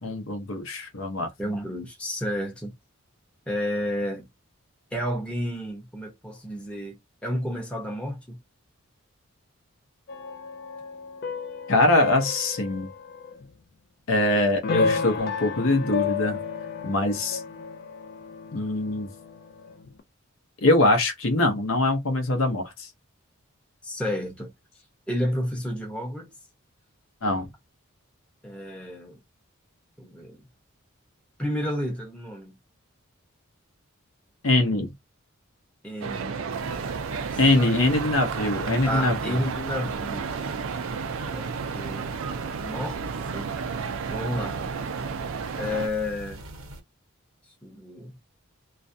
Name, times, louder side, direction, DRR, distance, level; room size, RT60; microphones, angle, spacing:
voice 1, 0.0-1.3 11.7-12.9 14.1-16.4 16.8-17.4 18.5-19.1 20.6-22.9 27.2-27.5 34.4-34.9 37.4-39.4, left 2 dB, 70° left, 0.7 m, -23 dB
voice 2, 1.4-2.7 3.5-4.3 4.9-8.4 23.8-24.5 25.1-26.3 28.4-29.2 30.0-30.4 31.4-32.6 35.8-36.4 37.1-37.7 38.8-40.4 41.3-42.1 42.6-43.0 43.3-43.5 44.1-44.6 45.5-46.4 47.6-48.1, left 1 dB, 5° left, 0.7 m, -31 dB
sound 1, 10.1-13.5 14.6-20.0, left 5 dB, 45° left, 0.3 m, -32 dB
sound 2, 36.0-45.9, right 5 dB, 70° right, 0.4 m, -32 dB
sound 3, 36.5-46.8, right 1 dB, 90° right, 0.9 m, -42 dB
2.4 x 2.1 x 2.6 m
head